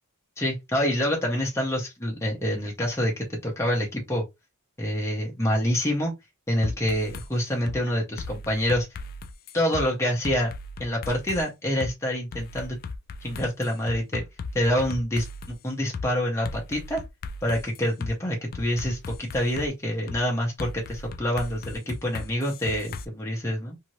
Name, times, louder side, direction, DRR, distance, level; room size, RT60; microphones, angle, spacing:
voice 1, 0.4-4.2 4.8-6.1 6.5-8.9 9.5-10.5 10.8-12.8 13.2-14.2 14.5-17.0 17.4-23.8, equal, 10° left, 0.8 m, -27 dB
sound 1, 6.6-7.3 7.7-7.8 8.2-9.9 10.2-11.4 11.8-11.9 12.3-15.5 15.9-16.1 16.4-18.1 18.5-19.7 20.1-20.2 20.6-23.0, left 3 dB, 40° left, 0.3 m, -37 dB
2.7 x 2.6 x 3.0 m
head